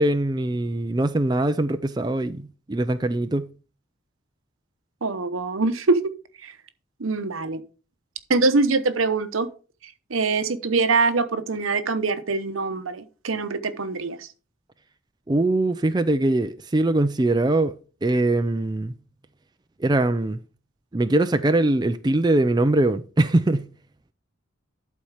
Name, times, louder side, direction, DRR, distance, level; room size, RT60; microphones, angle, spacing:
voice 1, 0.0-3.5 15.3-17.8 18.0-18.9 19.8-20.4 20.9-23.7, right 2 dB, 20° right, 0.4 m, -22 dB
voice 2, 5.0-6.1 6.4-6.6 7.0-7.6 8.3-9.5 9.8-14.3, right 3 dB, 80° right, 0.9 m, -24 dB
11.5 x 4.3 x 4.8 m
head